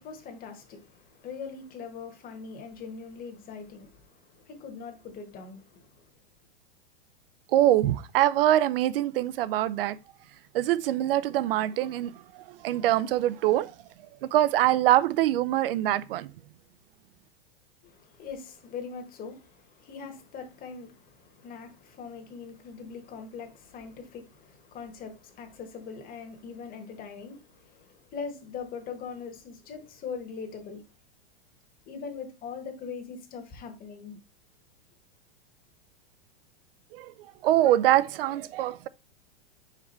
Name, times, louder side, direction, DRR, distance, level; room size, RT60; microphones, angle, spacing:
voice 1, 0.0-6.1 17.8-30.8 31.9-34.2, left 5 dB, 30° left, 1.6 m, -41 dB
voice 2, 7.5-10.0 10.5-13.7 14.2-16.3 36.9-37.1 37.4-38.9, right 13 dB, 65° right, 0.6 m, -24 dB
4.9 x 4.8 x 4.3 m
hypercardioid pair, 135°, 30 cm